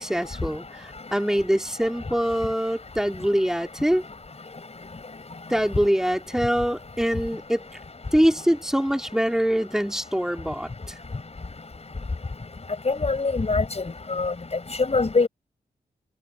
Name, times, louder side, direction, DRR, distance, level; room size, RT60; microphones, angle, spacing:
voice 1, 0.0-4.0 5.5-7.6 8.1-10.7, equal, 5° right, 3.1 m, -24 dB
voice 2, 12.8-13.8 14.1-14.3 14.9-15.3, left 3 dB, 40° left, 5.1 m, -23 dB
cardioid pair, 50°, 17 cm